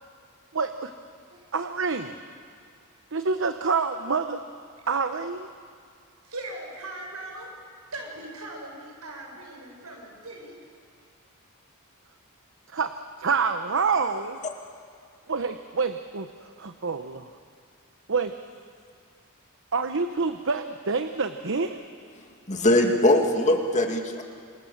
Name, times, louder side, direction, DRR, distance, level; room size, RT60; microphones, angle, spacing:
voice 1, 0.5-0.9 1.5-2.2 3.1-4.4 4.9-5.5 12.7-12.9 13.2-14.4 15.3-17.3 18.1-18.3 19.7-21.8, right 4 dB, 60° right, 8 dB, 1.0 m, -27 dB
voice 2, 6.2-7.5 7.9-10.5, right 2 dB, 85° right, 1 dB, 6.8 m, -39 dB
voice 3, 22.5-24.2, left 1 dB, 35° left, 3 dB, 2.4 m, -21 dB
28.0 x 26.0 x 7.3 m, 2.2 s
head